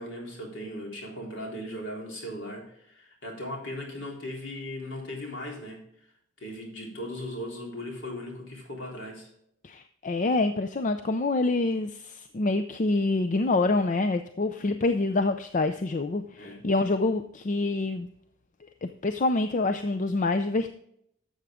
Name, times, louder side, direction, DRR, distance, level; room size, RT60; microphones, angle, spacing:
voice 1, 0.0-5.8 6.4-9.3 16.3-16.6, left 1 dB, 65° left, -1 dB, 3.6 m, -38 dB
voice 2, 9.6-18.1 18.8-20.7, left 2 dB, 40° left, 9 dB, 0.5 m, -26 dB
12.0 x 7.8 x 3.6 m, 0.73 s
head